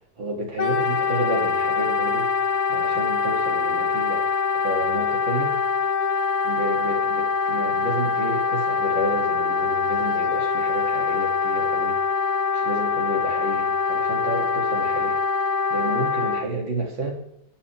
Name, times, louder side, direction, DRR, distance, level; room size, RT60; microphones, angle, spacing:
voice 1, 0.2-2.3 2.7-4.2 4.5-5.6 6.4-12.0 12.5-15.2 15.7-17.2, right 1 dB, 70° right, -1 dB, 3.3 m, -30 dB
Wind instrument woodwind instrument, 0.6-16.5, left 5 dB, 75° left, 1.6 m, -24 dB
22.5 x 8.4 x 3.5 m, 0.78 s
omnidirectional pair, 2.2 m